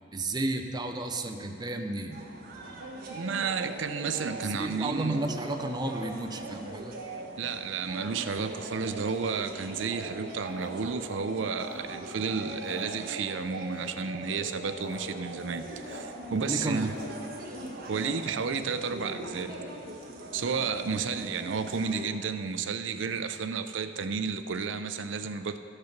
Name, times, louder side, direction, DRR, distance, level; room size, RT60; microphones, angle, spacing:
voice 1, 0.1-2.2 4.2-7.0 16.3-16.9, right 2 dB, 20° right, 5 dB, 0.6 m, -32 dB
sound 1, 2.1-22.1, right 1 dB, 55° right, 1.5 m, -41 dB
voice 2, 3.1-5.2 7.4-16.9 17.9-19.5 20.3-25.6, right 5 dB, 75° right, 10 dB, 0.5 m, -32 dB
sound 2, 10.3-12.2 12.5-13.4 13.7-14.2 14.6-15.0 15.2-15.3 15.5-16.0 16.4-18.4, left 2 dB, 75° left, 1.5 m, -47 dB
13.5 x 6.6 x 5.9 m, 2.6 s
head